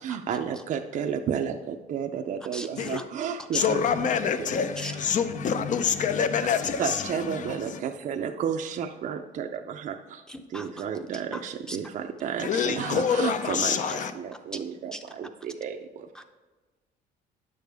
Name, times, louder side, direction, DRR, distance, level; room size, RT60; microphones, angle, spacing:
voice 1, 0.0-4.6 6.8-10.2 10.5-16.2, right 7 dB, 50° right, 0.5 m, -32 dB
voice 2, 2.4-3.1 3.4-3.7 4.8-4.9 10.3-11.8 13.9-14.0 14.9-15.0 16.1-16.2, equal, 5° left, 0.7 m, -40 dB
voice 3, 3.5-7.8 12.4-14.1, left 7 dB, 50° left, 0.7 m, -26 dB
9.6 x 6.6 x 3.5 m
cardioid pair, 110°, 17 cm